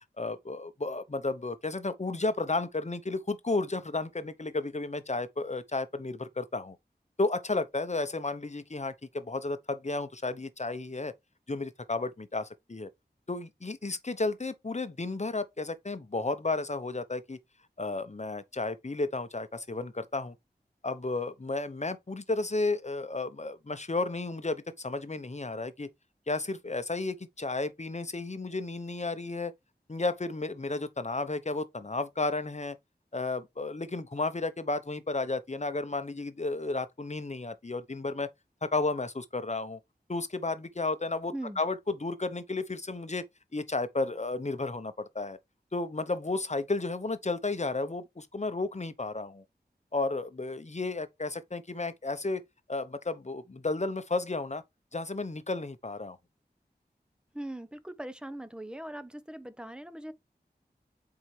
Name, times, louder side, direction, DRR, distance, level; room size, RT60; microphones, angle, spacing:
voice 1, 0.2-6.8 7.2-11.1 11.5-12.9 13.3-17.4 17.8-20.3 20.8-25.9 26.3-29.5 29.9-32.8 33.1-38.3 38.6-39.8 40.1-43.2 43.5-45.4 45.7-49.4 49.9-52.4 52.7-54.6 54.9-56.2, left 3 dB, 40° left, 0.9 m, -33 dB
voice 2, 57.3-60.1, right 1 dB, 5° right, 0.9 m, -40 dB
7.0 x 4.8 x 3.3 m
wide cardioid pair, 50°, 17 cm